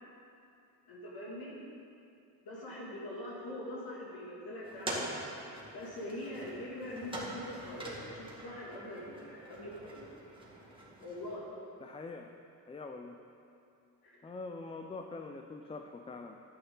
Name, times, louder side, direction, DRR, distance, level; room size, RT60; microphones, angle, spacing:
voice 1, 0.9-1.6 2.4-5.0 5.7-10.0 11.0-11.4 14.0-14.2, left 1 dB, 55° left, -5 dB, 2.8 m, -43 dB
sound 1, 4.6-11.4, right 1 dB, 10° right, 2.2 m, -44 dB
voice 2, 11.8-12.3 12.7-13.2 14.2-16.4, left 3 dB, 15° left, 4 dB, 0.4 m, -44 dB
11.0 x 9.4 x 4.0 m, 2.6 s
cardioid pair, 90°, 43 cm